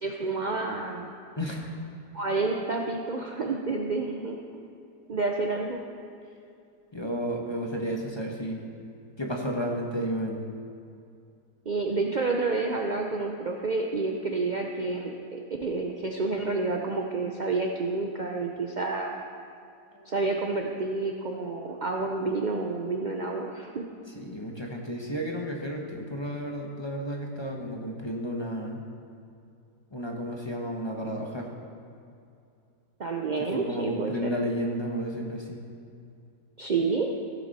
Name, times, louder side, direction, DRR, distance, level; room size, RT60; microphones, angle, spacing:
voice 1, 0.0-1.1 2.1-4.6 5.1-5.8 11.7-19.2 20.1-23.9 33.0-34.3 36.6-37.1, right 3 dB, 70° right, 1 dB, 0.4 m, -29 dB
voice 2, 1.4-1.7 6.9-8.6 9.2-10.4 19.9-20.1 24.1-28.8 29.9-31.5 33.4-35.6, equal, 20° left, 0 dB, 0.9 m, -32 dB
15.5 x 8.3 x 4.2 m, 2.5 s
omnidirectional pair, 1.7 m